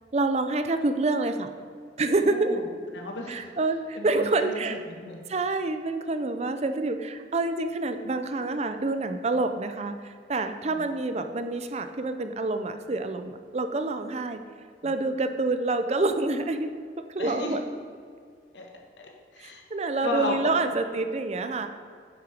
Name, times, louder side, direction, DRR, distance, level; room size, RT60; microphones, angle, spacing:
voice 1, 0.1-1.5 2.0-2.6 3.3-4.8 5.3-14.4 14.8-16.7 17.1-17.6 19.4-21.7, right 2 dB, 35° right, 8 dB, 0.5 m, -27 dB
voice 2, 2.2-2.6 2.9-3.4 4.0-5.2 10.7-10.8 14.8-14.9 17.2-17.6 18.5-18.7 19.0-19.6 20.0-20.5, left 2 dB, 75° left, 1 dB, 1.7 m, -34 dB
9.7 x 7.8 x 5.1 m, 2.1 s
head